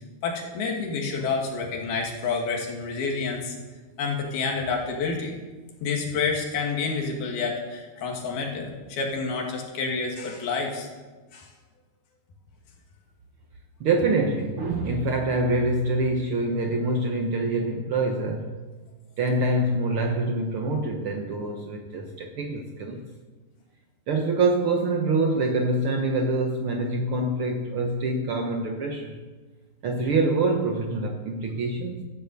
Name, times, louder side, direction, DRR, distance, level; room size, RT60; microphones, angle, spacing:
voice 1, 0.2-3.6 4.0-5.3 5.8-10.9 11.3-11.5, left 4 dB, 90° left, 0 dB, 4.4 m, -28 dB
voice 2, 13.8-18.6 19.2-23.0 24.1-29.2 29.8-32.0, right 2 dB, 80° right, 3 dB, 1.2 m, -25 dB
14.0 x 10.5 x 8.2 m, 1.3 s
omnidirectional pair, 4.2 m